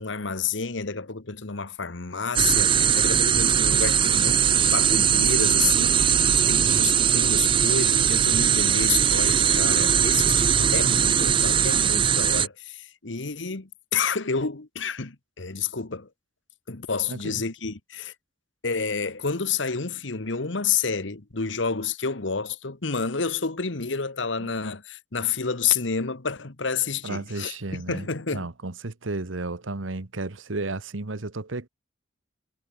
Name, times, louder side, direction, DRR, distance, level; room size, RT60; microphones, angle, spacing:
voice 1, 0.0-16.1 16.7-18.1 18.6-28.5, left 5 dB, 70° left, 1.4 m, -29 dB
sound 1, 2.3-12.5, right 8 dB, 25° right, 0.5 m, -20 dB
voice 2, 6.5-6.9 17.1-17.4 24.4-24.5 27.0-28.0 28.3-31.7, right 2 dB, 90° right, 1.3 m, -33 dB
head